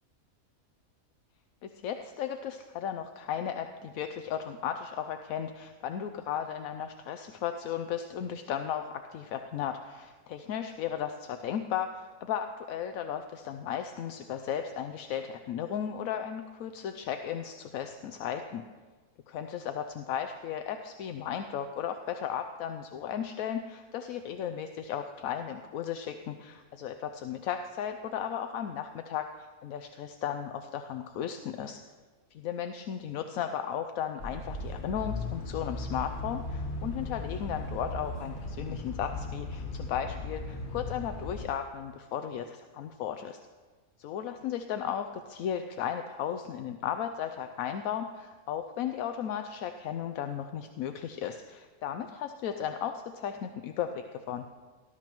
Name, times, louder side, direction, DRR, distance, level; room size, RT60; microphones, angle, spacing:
voice 1, 1.6-18.6 19.3-31.8 32.3-43.4 44.0-54.5, left 9 dB, 80° left, 7 dB, 1.0 m, -35 dB
sound 1, 34.2-41.5, left 2 dB, 40° left, 1.2 m, -37 dB
18.5 x 12.5 x 3.0 m, 1.4 s
omnidirectional pair, 1.5 m